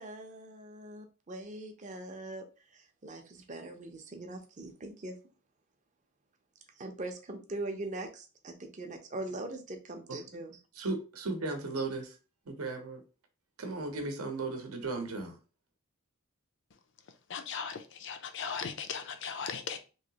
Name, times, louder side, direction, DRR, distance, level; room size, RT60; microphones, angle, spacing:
voice 1, 0.0-2.4 2.7-5.2 6.8-10.6, right 2 dB, 35° right, 0.6 m, -41 dB
voice 2, 10.8-12.1 12.5-13.0 13.6-15.4, right 3 dB, 75° right, 0.7 m, -36 dB
voice 3, 17.3-19.8, left 6 dB, 55° left, 0.5 m, -38 dB
3.1 x 2.8 x 2.8 m
head